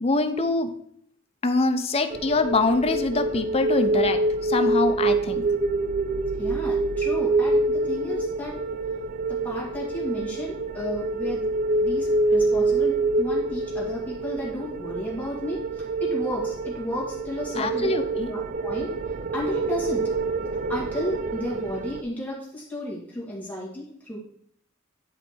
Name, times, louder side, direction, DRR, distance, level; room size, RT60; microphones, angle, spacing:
voice 1, 0.0-0.7 1.4-5.4 17.6-18.3, left 3 dB, 30° left, 7 dB, 0.7 m, -24 dB
sound 1, 2.1-22.0, right 2 dB, 40° right, 0.4 m, -26 dB
voice 2, 6.4-8.6 9.3-11.5 11.8-17.9 18.3-18.9 19.3-20.1 20.7-24.2, left 1 dB, 10° left, -5 dB, 1.9 m, -33 dB
10.0 x 4.1 x 4.5 m, 0.66 s
head